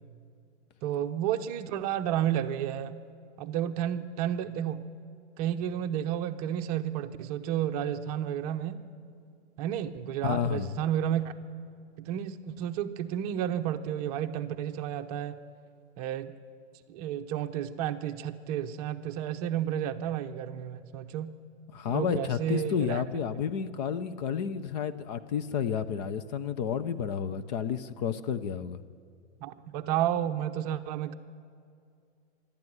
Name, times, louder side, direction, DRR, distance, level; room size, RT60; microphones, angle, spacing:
voice 1, 0.8-3.0 3.4-4.9 5.4-8.8 9.6-11.3 12.0-15.4 16.0-16.3 16.9-21.3 21.9-23.0 29.4-31.1, right 10 dB, 35° right, 8 dB, 0.9 m, -31 dB
voice 2, 10.2-10.8 21.7-28.8, left 7 dB, 40° left, 11 dB, 0.9 m, -31 dB
24.5 x 12.5 x 9.4 m, 2.4 s
hypercardioid pair, 145°, 35 cm